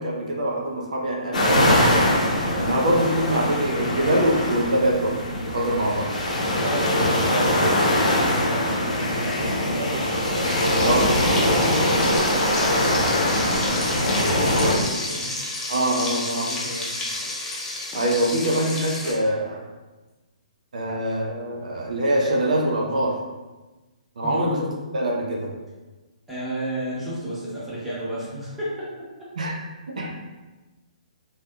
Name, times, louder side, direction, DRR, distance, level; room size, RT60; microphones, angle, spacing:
voice 1, 0.0-1.8 2.6-6.1 10.8-11.1 15.7-16.5 17.9-19.6 20.7-23.2 24.2-24.7 24.9-25.5 29.4-29.5 30.0-30.1, right 1 dB, 70° right, -1 dB, 0.6 m, -24 dB
sound 1, 1.3-14.8, left 1 dB, 75° left, 0.7 m, -22 dB
voice 2, 6.5-7.7 8.1-10.1 10.5-11.0 11.4-15.7 16.2-17.0 18.1-18.3 24.2-24.6 26.3-29.1, right 1 dB, 5° right, -10 dB, 1.1 m, -32 dB
Frying (food), 10.0-19.1, left 2 dB, 15° left, 0.6 m, -31 dB
3.2 x 2.7 x 2.2 m, 1.2 s
figure-of-eight pair, 130°, 4 cm